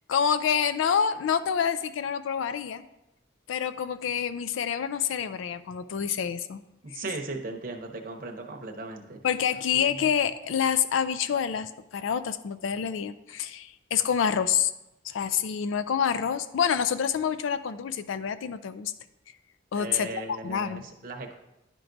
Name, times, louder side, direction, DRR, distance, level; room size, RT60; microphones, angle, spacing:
voice 1, 0.1-2.8 3.5-6.6 9.2-14.7 15.0-18.9 19.7-20.8, left 7 dB, 85° left, 13 dB, 0.4 m, -27 dB
voice 2, 6.8-9.2 19.7-21.3, right 2 dB, 45° right, 2 dB, 0.7 m, -37 dB
11.0 x 4.5 x 2.6 m, 0.92 s
head